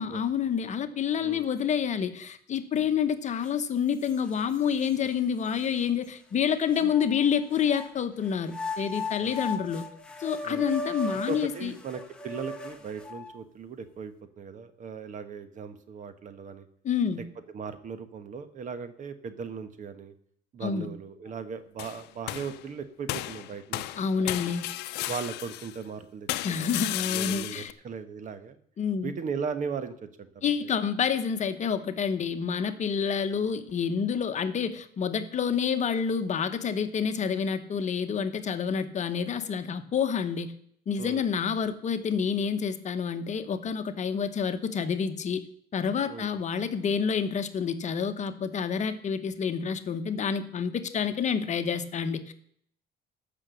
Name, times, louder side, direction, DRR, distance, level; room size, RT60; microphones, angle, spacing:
voice 1, 0.0-9.8 10.2-11.7 16.8-17.2 20.6-20.9 24.0-24.7 26.4-27.7 28.8-29.1 30.4-40.5 40.9-45.4 45.7-52.3, left 7 dB, 45° left, 9 dB, 1.1 m, -28 dB
sound 1, 3.4-3.5 4.0-4.9 5.6-5.7 6.8-7.9 8.5-13.4, left 2 dB, 5° left, 1.5 m, -37 dB
voice 2, 11.1-16.7 17.2-17.3 17.5-20.1 20.5-23.8 24.1-24.6 25.1-28.6 29.0-30.7 33.3-33.4 41.0-41.2 46.1-46.4, right 6 dB, 50° right, 11 dB, 1.2 m, -38 dB
sound 2, 21.8-22.6 23.1-25.8 26.3-27.7, left 16 dB, 90° left, 0.6 m, -34 dB
14.5 x 6.1 x 6.9 m, 0.65 s
cardioid pair, 110°, 17 cm